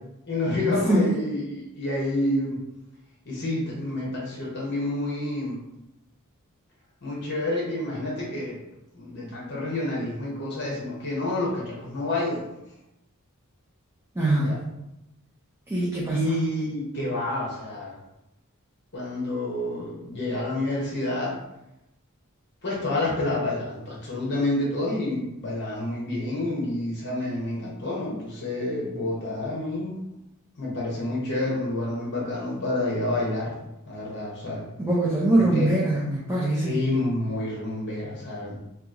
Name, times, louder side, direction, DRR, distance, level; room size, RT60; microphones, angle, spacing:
voice 1, 0.3-2.6 3.3-5.6 7.0-8.6 8.9-12.4 14.3-14.5 16.1-18.0 18.9-21.4 22.6-29.9 30.6-33.6 33.9-34.6 35.3-35.7 36.6-38.5, left 2 dB, 50° left, -5 dB, 0.9 m, -28 dB
voice 2, 14.2-14.6 15.7-16.3 34.8-36.8, right 1 dB, 10° right, -6 dB, 0.5 m, -23 dB
2.8 x 2.3 x 3.6 m, 0.88 s
head